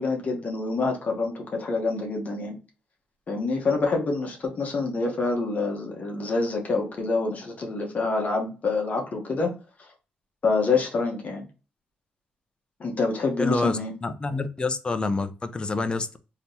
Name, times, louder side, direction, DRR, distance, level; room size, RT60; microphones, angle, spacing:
voice 1, 0.0-2.6 3.3-9.5 10.4-11.4 12.8-13.9, left 3 dB, 50° left, 1 dB, 1.0 m, -26 dB
voice 2, 13.4-16.2, left 3 dB, 30° left, 10 dB, 0.5 m, -27 dB
3.3 x 2.9 x 2.6 m, 0.32 s
cardioid pair, 80°, 3 cm